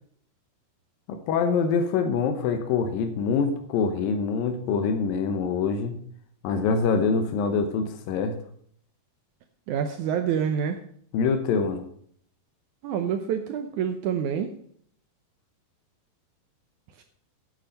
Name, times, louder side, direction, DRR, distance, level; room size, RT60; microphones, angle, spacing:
voice 1, 1.1-6.0 6.4-8.3 11.1-11.9, left 5 dB, 85° left, 6 dB, 2.7 m, -25 dB
voice 2, 9.7-10.8 12.8-14.5 17.0-17.1, right 8 dB, 75° right, 6 dB, 1.9 m, -27 dB
9.2 x 8.7 x 5.4 m, 0.62 s
omnidirectional pair, 4.1 m